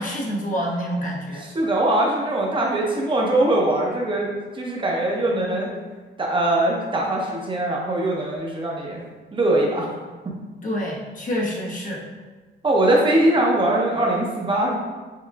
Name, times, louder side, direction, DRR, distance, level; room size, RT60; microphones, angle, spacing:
voice 1, 0.0-1.5 10.6-12.0, equal, 40° left, -2 dB, 1.0 m, -27 dB
voice 2, 1.3-5.7 6.2-9.0 9.3-10.0 12.6-14.8, right 1 dB, 25° right, -2 dB, 0.9 m, -21 dB
6.5 x 2.3 x 2.4 m, 1.3 s
cardioid pair, 90°, 20 cm